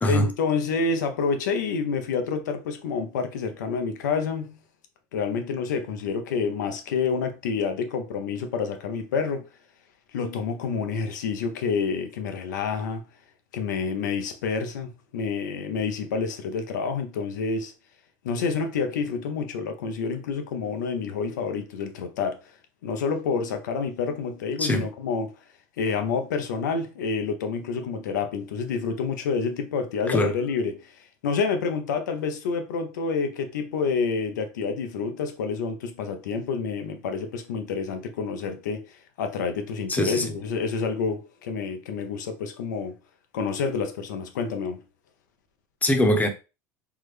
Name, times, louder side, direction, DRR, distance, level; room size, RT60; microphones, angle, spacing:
voice 1, 0.0-4.6 5.1-9.5 10.1-13.0 13.5-17.7 18.2-22.6 22.8-25.4 25.8-43.0 43.3-44.8, left 5 dB, 85° left, 0.6 m, -28 dB
voice 2, 39.9-40.2 45.8-46.3, equal, 15° left, 0.7 m, -22 dB
3.5 x 2.1 x 3.1 m
hypercardioid pair, 95°, 9 cm